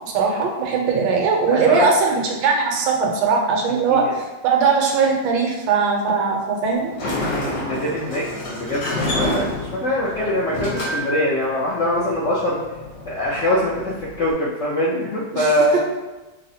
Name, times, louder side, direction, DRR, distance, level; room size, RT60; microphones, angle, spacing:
voice 1, 0.0-6.9 15.3-15.8, right 5 dB, 80° right, 0 dB, 1.3 m, -20 dB
voice 2, 1.5-1.9 3.9-4.1 7.1-12.6 13.1-15.8, left 1 dB, 85° left, -6 dB, 0.6 m, -23 dB
Sliding door, 6.8-14.3, left 1 dB, 70° left, 1.6 m, -29 dB
5.5 x 2.0 x 2.7 m, 1.1 s
omnidirectional pair, 2.0 m